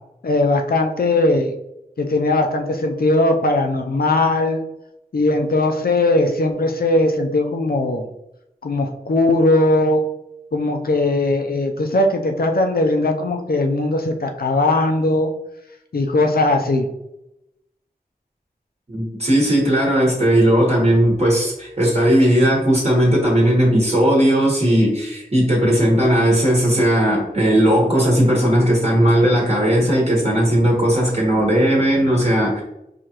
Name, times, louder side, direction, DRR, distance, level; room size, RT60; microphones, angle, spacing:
voice 1, 0.2-1.5 2.0-4.6 5.1-8.1 8.6-10.0 10.5-15.3 15.9-16.9, left 2 dB, 80° left, 4 dB, 0.6 m, -19 dB
voice 2, 18.9-32.6, right 1 dB, 45° right, -4 dB, 1.4 m, -17 dB
4.7 x 2.5 x 2.9 m, 0.85 s
wide cardioid pair, 55°, 15 cm